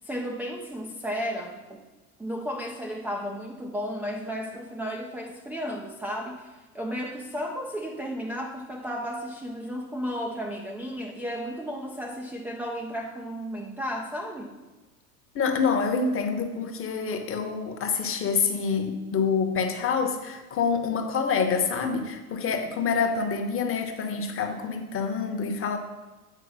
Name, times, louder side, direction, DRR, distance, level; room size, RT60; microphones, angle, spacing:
voice 1, 0.0-1.8 2.2-14.5 16.6-16.7, equal, 5° right, 0 dB, 0.3 m, -33 dB
voice 2, 15.3-25.8, left 5 dB, 30° left, 5 dB, 1.0 m, -27 dB
8.3 x 4.6 x 4.1 m, 1.2 s
hypercardioid pair, 85°, 46 cm